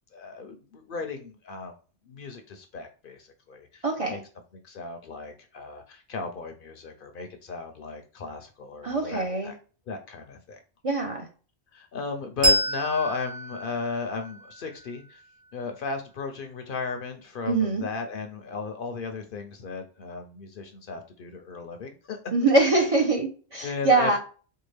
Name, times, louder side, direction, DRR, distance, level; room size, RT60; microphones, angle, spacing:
voice 1, 0.1-1.7 2.1-4.2 4.6-9.6 9.9-10.6 11.7-15.2 15.5-22.2 23.6-24.2, left 4 dB, 60° left, 6 dB, 0.7 m, -35 dB
voice 2, 3.8-4.2 8.8-9.5 10.8-11.3 17.5-17.8 22.3-24.2, right 3 dB, 40° right, 1 dB, 0.6 m, -23 dB
Bell, 12.4-15.5, right 1 dB, 90° right, 1.7 m, -29 dB
4.5 x 2.3 x 3.2 m, 0.37 s
omnidirectional pair, 1.1 m